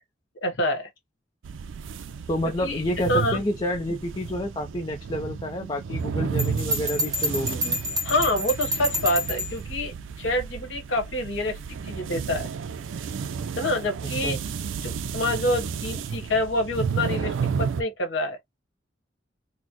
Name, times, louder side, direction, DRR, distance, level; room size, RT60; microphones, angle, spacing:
voice 1, 0.4-0.9 2.6-2.8 3.1-3.4 8.0-12.5 13.6-14.4 14.8-18.4, left 1 dB, 85° left, 1.2 m, -27 dB
sound 1, 1.4-17.8, right 6 dB, 85° right, 0.4 m, -32 dB
voice 2, 2.3-7.8 14.2-14.4, left 1 dB, 25° left, 0.5 m, -29 dB
Bell, 6.4-9.6, equal, 20° right, 1.1 m, -28 dB
4.1 x 2.0 x 2.9 m
head